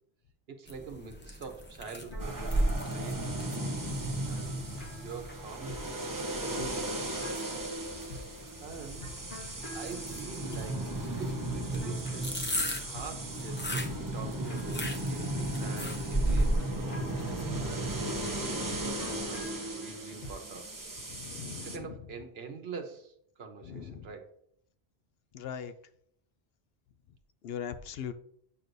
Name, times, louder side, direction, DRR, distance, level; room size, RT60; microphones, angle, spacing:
voice 1, 0.5-3.9 4.2-6.1 6.4-7.3 8.6-9.1 9.7-12.4 12.8-17.1 17.5-19.5 19.8-20.8 21.5-24.3, right 5 dB, 70° right, 5 dB, 1.2 m, -45 dB
sound 1, 0.7-19.5, right 1 dB, 10° left, 0.7 m, -37 dB
sound 2, 2.1-20.7, equal, 50° left, 1.5 m, -47 dB
sound 3, 2.2-21.8, right 1 dB, 20° right, 0.7 m, -36 dB
voice 2, 21.1-21.8 23.7-24.1 25.3-25.7 27.4-28.1, left 8 dB, 70° left, 11 dB, 0.8 m, -39 dB
8.3 x 6.2 x 2.6 m, 0.68 s
omnidirectional pair, 1.1 m